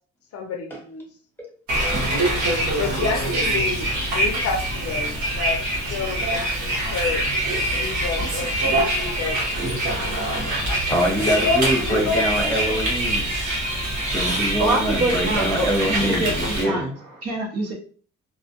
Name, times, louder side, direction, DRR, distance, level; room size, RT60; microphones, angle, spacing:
voice 1, 0.3-1.1 2.7-5.6 5.9-7.2 7.7-9.4 11.2-12.2, left 4 dB, 50° left, 4 dB, 0.5 m, -29 dB
Bus, 1.7-16.6, right 1 dB, 80° right, 1.0 m, -24 dB
voice 2, 10.9-13.3 14.1-16.8, equal, 5° left, -2 dB, 1.1 m, -24 dB
voice 3, 14.6-17.7, right 2 dB, 55° right, 0 dB, 0.9 m, -25 dB
2.2 x 2.1 x 2.8 m, 0.43 s
cardioid pair, 90°, 30 cm